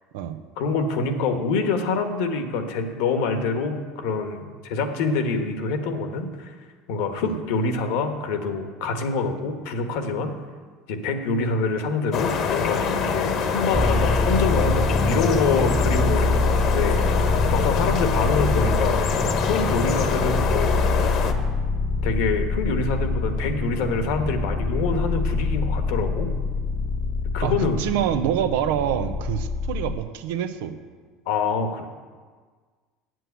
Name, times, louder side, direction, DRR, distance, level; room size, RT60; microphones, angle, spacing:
voice 1, 0.6-6.5 6.9-10.3 10.9-19.1 19.4-20.9 22.0-26.3 27.3-27.8 31.3-31.9, left 4 dB, 75° left, 6 dB, 1.3 m, -26 dB
sound 1, 12.1-21.3, left 5 dB, 55° left, 1.1 m, -25 dB
sound 2, 13.7-30.0, left 3 dB, 5° left, 0.5 m, -25 dB
voice 2, 27.4-30.8, right 10 dB, 75° right, 9 dB, 0.8 m, -26 dB
7.8 x 7.7 x 8.2 m, 1.5 s
supercardioid pair, 90°, 0 cm